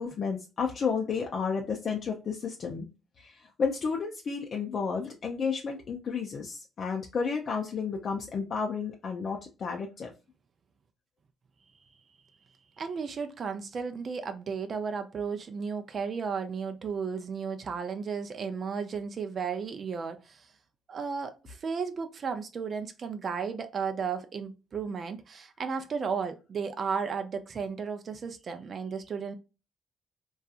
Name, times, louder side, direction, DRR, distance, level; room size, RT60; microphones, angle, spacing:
voice 1, 0.0-2.9 3.2-10.1, left 5 dB, 55° left, 0.4 m, -32 dB
voice 2, 12.8-20.5 20.9-29.3, right 6 dB, 50° right, 0.4 m, -34 dB
2.7 x 2.3 x 2.3 m
cardioid pair, 90°, 0 cm